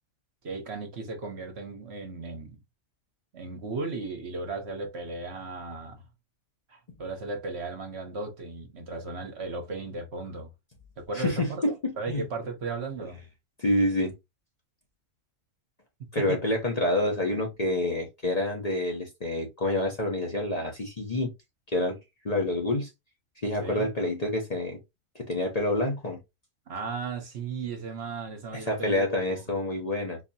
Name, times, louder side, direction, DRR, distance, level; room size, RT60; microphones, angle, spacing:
voice 1, 0.4-2.6 3.3-6.0 6.7-10.5 11.0-13.2 16.0-16.4 23.6-23.9 26.7-29.2, right 3 dB, 55° right, 1.1 m, -36 dB
voice 2, 11.1-12.2 13.6-14.1 16.1-21.3 21.7-22.0 22.2-22.9 23.4-24.8 25.1-26.2 28.5-30.2, left 1 dB, 35° left, 0.8 m, -28 dB
4.0 x 2.8 x 2.7 m
omnidirectional pair, 1.4 m